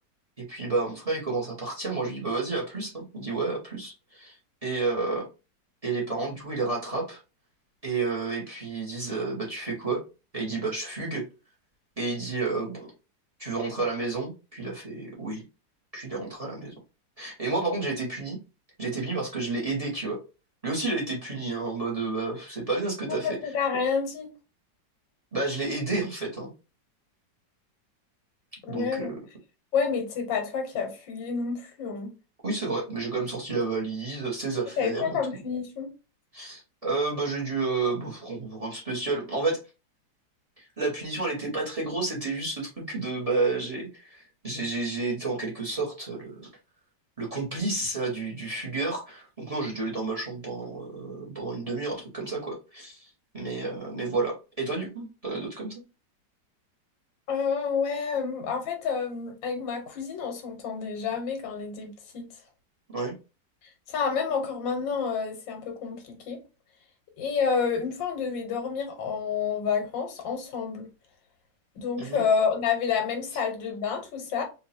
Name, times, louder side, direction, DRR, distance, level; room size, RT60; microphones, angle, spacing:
voice 1, 0.4-4.4 4.6-5.3 5.8-7.2 7.8-10.0 10.3-11.2 12.0-12.9 13.4-15.4 15.9-16.7 17.2-18.4 18.8-20.2 20.6-23.4 25.3-26.5 28.7-29.2 32.4-35.2 36.3-39.6 40.6-46.5 47.2-55.7 62.9-63.1 72.0-72.2, right 3 dB, 20° right, 1.3 m, -30 dB
voice 2, 23.2-24.3 28.6-29.1 29.7-32.1 34.8-35.9 57.3-62.3 63.9-66.4 67.2-70.9 71.7-74.4, left 6 dB, 90° left, 1.8 m, -29 dB
4.2 x 2.8 x 2.8 m
omnidirectional pair, 2.0 m